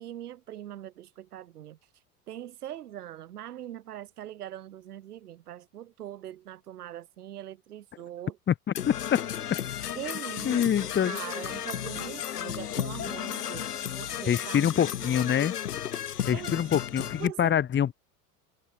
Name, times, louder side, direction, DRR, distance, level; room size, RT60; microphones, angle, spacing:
voice 1, 0.0-1.8 2.3-8.4 9.9-15.4 16.3-16.6 17.2-17.6, right 12 dB, 70° right, 2.3 m, -42 dB
voice 2, 8.5-9.2 10.4-11.2 14.2-15.5 16.3-17.9, left 9 dB, 25° left, 1.6 m, -25 dB
Percussion / Brass instrument, 8.7-17.3, left 10 dB, 70° left, 3.4 m, -34 dB
figure-of-eight pair, 75°, 48 cm